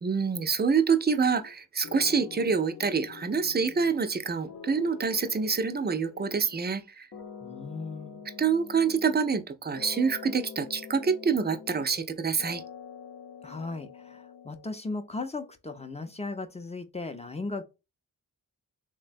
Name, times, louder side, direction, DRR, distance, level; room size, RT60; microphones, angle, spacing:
voice 1, 0.0-7.1 8.4-12.6, right 5 dB, 30° right, 0.5 m, -26 dB
sound 1, 1.3-1.5 1.8-4.2 4.5-6.8 7.1-9.5 9.8-12.1 12.4-14.7, left 6 dB, 50° left, 0.7 m, -45 dB
voice 2, 7.4-8.2 13.4-17.6, left 3 dB, 20° left, 0.6 m, -37 dB
3.2 x 2.1 x 2.5 m
supercardioid pair, 40°, 36 cm